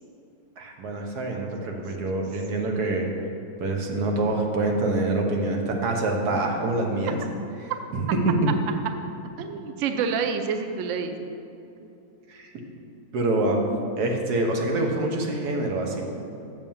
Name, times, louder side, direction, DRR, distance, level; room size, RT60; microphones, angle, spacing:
voice 1, 0.6-3.1 3.6-7.2 7.9-8.5 12.3-12.5 13.1-13.6 14.0-16.1, right 2 dB, 60° right, 1 dB, 1.5 m, -25 dB
voice 2, 9.4-11.3, right 6 dB, 80° right, 7 dB, 0.6 m, -28 dB
7.2 x 5.4 x 7.1 m, 2.9 s
omnidirectional pair, 2.0 m